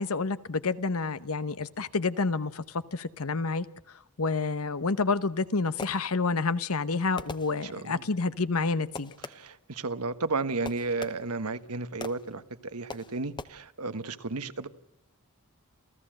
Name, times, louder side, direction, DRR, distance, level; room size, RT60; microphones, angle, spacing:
voice 1, 0.0-3.7 4.2-9.1, left 4 dB, 70° left, 14 dB, 1.0 m, -29 dB
Fireworks, 5.3-6.4 7.2-8.0 8.9-9.7 10.6-11.5 12.0-12.4 12.9-13.4, left 3 dB, 20° left, 0.9 m, -42 dB
voice 2, 7.7-8.0 9.3-12.4 12.7-14.7, right 3 dB, 85° right, 11 dB, 1.4 m, -33 dB
28.0 x 15.5 x 7.7 m, 0.82 s
head